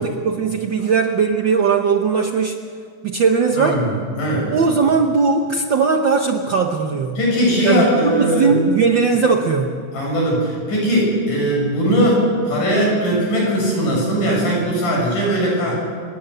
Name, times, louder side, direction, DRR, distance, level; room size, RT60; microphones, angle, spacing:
voice 1, 0.0-2.6 3.0-3.8 4.5-7.2 7.6-9.8, right 5 dB, 80° right, 4 dB, 1.0 m, -18 dB
voice 2, 3.5-4.5 7.2-8.6 9.9-15.7, equal, 85° left, -2 dB, 8.2 m, -19 dB
28.5 x 17.5 x 6.8 m, 2.1 s
omnidirectional pair, 3.6 m